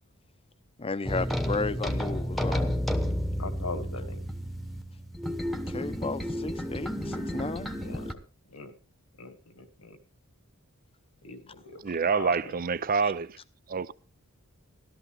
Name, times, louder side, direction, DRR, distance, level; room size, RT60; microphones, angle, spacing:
voice 1, 0.8-2.7 5.7-7.7, left 3 dB, 25° left, 0.7 m, -33 dB
sound 1, 1.1-8.1, equal, ahead, 1.1 m, -31 dB
voice 2, 3.4-4.2 7.7-8.2 8.5-8.8 9.2-10.0 11.2-11.8 12.1-12.6, left 3 dB, 80° left, 1.6 m, -40 dB
voice 3, 11.8-13.4 13.7-13.9, right 5 dB, 40° right, 0.5 m, -27 dB
13.5 x 13.0 x 3.4 m
head